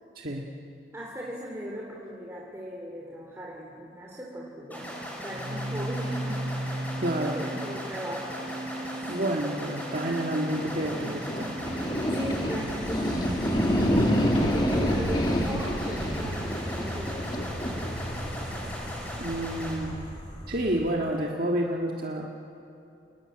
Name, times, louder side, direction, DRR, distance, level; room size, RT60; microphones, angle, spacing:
voice 1, 0.9-4.9 5.2-6.8 7.3-8.5 9.1-9.5 12.1-13.3 14.3-17.2, equal, 15° right, -3 dB, 2.9 m, -38 dB
sound 1, 4.7-19.8, equal, 10° left, 5.7 m, -38 dB
Organ, 5.2-16.0, right 1 dB, 80° right, 5.7 m, -38 dB
voice 2, 7.0-7.4 9.1-11.5 19.2-20.0 20.5-22.3, right 1 dB, 50° right, -1 dB, 1.7 m, -29 dB
sound 2, 10.5-20.9, equal, 25° left, 2.2 m, -28 dB
29.0 x 20.5 x 8.9 m, 2.7 s
head